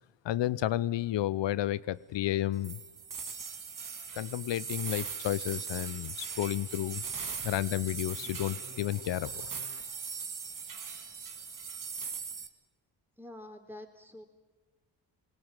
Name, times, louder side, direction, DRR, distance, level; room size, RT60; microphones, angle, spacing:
voice 1, 0.2-2.8 4.1-7.0 7.4-9.4, left 13 dB, 60° left, 20 dB, 0.8 m, -31 dB
sound 1, 2.6-12.5, right 5 dB, 40° right, 1.9 m, -40 dB
sound 2, 7.1-9.8, left 4 dB, 30° left, 1.7 m, -52 dB
voice 2, 13.2-14.2, left 1 dB, 5° right, 4 dB, 3.8 m, -47 dB
21.5 x 17.5 x 9.1 m, 1.2 s
supercardioid pair, 55°, 49 cm